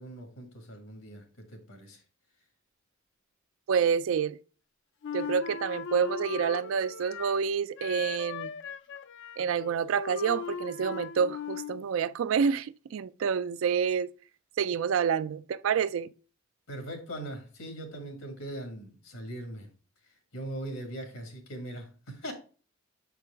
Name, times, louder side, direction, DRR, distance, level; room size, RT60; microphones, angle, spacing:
voice 1, 0.0-2.0 16.7-19.7 20.3-22.3, right 1 dB, 85° left, 1.8 m, -40 dB
voice 2, 3.7-4.4 5.1-8.5 9.4-14.1 14.6-16.1, right 7 dB, 70° right, 0.3 m, -28 dB
Wind instrument woodwind instrument, 5.0-7.5 7.8-11.8, left 7 dB, 60° left, 0.4 m, -38 dB
6.7 x 4.6 x 3.4 m
head